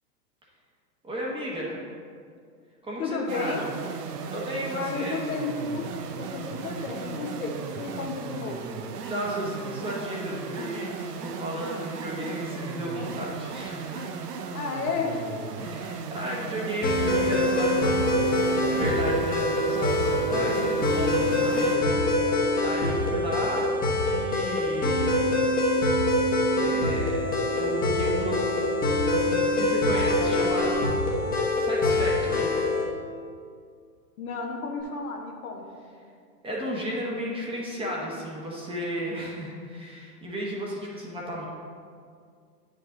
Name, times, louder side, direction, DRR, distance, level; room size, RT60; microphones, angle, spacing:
voice 1, 1.0-1.8 2.8-3.6 4.3-5.1 9.0-14.1 15.6-18.0 18.6-22.1 22.6-23.7 24.0-25.3 26.5-28.5 29.1-30.7 31.5-32.6 36.4-41.5, equal, 10° right, -4 dB, 1.1 m, -33 dB
voice 2, 3.0-3.7 4.7-5.9 6.2-8.8 14.5-15.1 34.2-35.8, left 4 dB, 60° left, 2 dB, 1.3 m, -32 dB
sound 1, 3.3-21.8, right 5 dB, 75° right, 0.8 m, -36 dB
sound 2, 16.8-32.9, left 1 dB, 20° left, 1.2 m, -24 dB
8.6 x 5.2 x 3.8 m, 2.2 s
hypercardioid pair, 115°, 48 cm